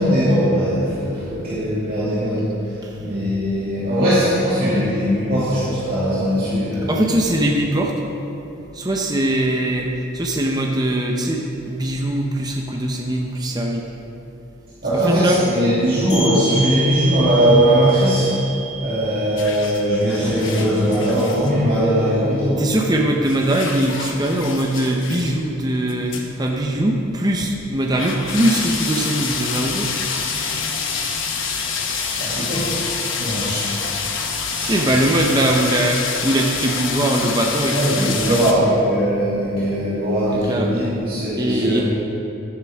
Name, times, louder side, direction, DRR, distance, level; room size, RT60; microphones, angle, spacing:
voice 1, 0.0-2.5 3.0-7.0 14.8-18.3 18.8-22.6 32.2-32.7 33.2-33.9 34.3-34.7 37.7-41.8, equal, 45° right, -12 dB, 2.4 m, -20 dB
voice 2, 6.9-8.0 8.7-13.9 14.9-15.4 22.6-29.9 34.6-38.8 40.3-40.8 41.4-41.8, right 1 dB, 20° right, 0 dB, 0.7 m, -21 dB
sound 1, 16.1-21.6, right 3 dB, 25° left, 1.8 m, -29 dB
sound 2, 19.4-21.5 23.2-25.3 25.9-26.2 26.5-26.6 27.4-27.5 28.0-38.5, left 5 dB, 65° left, 1.1 m, -27 dB
12.0 x 10.5 x 3.5 m, 2.9 s
head